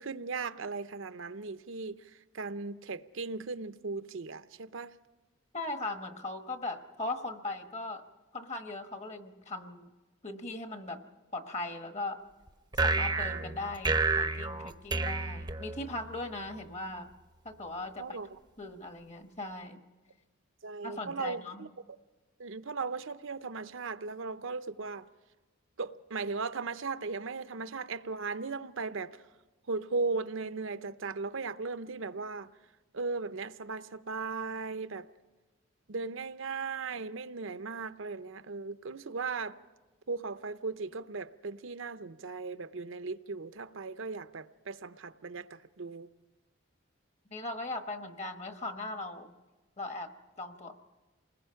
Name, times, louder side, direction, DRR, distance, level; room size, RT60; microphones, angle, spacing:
voice 1, 0.0-2.0 2.3-4.9 18.0-18.3 20.6-21.7 22.4-25.1 25.8-29.2 29.7-32.5 32.9-35.1 35.9-39.6 40.1-46.1, right 4 dB, 65° right, 0.7 m, -37 dB
voice 2, 5.5-8.0 8.3-9.9 10.2-11.0 11.3-12.2 12.8-17.1 17.4-18.2 18.6-19.8 20.8-21.7 47.3-49.3 49.8-50.1 50.4-50.7, left 2 dB, 30° left, 1.2 m, -39 dB
sound 1, 12.7-16.2, right 3 dB, 20° right, 0.7 m, -30 dB
28.5 x 20.5 x 5.7 m
head